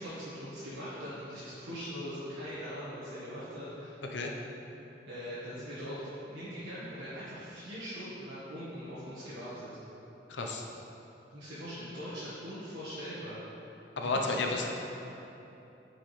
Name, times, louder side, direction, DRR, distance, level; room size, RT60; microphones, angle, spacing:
voice 1, 0.0-4.0 5.1-9.7 11.3-13.4 14.0-14.6, equal, 70° right, -12 dB, 1.4 m, -41 dB
voice 2, 10.3-10.7 14.0-14.7, left 3 dB, 80° left, 1 dB, 0.7 m, -31 dB
9.3 x 4.8 x 3.2 m, 3.0 s
head